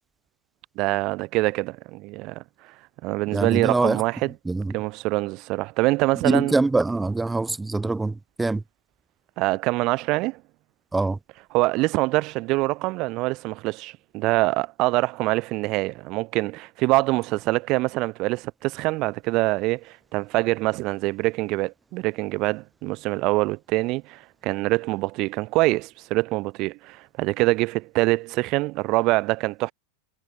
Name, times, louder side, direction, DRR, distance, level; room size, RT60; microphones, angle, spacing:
voice 1, 0.8-2.4 3.0-4.3 4.7-6.5 9.4-10.4 11.5-29.7, right 22 dB, 40° right, 0.9 m, -24 dB
voice 2, 3.3-4.0 4.5-4.8 6.2-8.6 10.9-11.2, right 3 dB, 10° right, 0.5 m, -23 dB
figure-of-eight pair, 90°, 0 cm